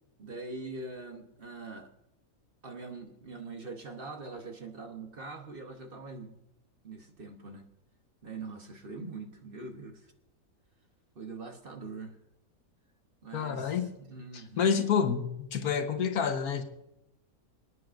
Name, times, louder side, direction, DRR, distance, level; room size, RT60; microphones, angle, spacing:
voice 1, 0.2-1.9 2.6-6.4 6.8-7.6 8.2-10.1 11.1-12.2 13.2-14.8, right 3 dB, 40° right, 4 dB, 1.1 m, -43 dB
voice 2, 13.3-13.9 14.3-16.6, left 7 dB, 80° left, 6 dB, 1.6 m, -28 dB
26.0 x 9.5 x 2.5 m, 0.87 s
omnidirectional pair, 1.6 m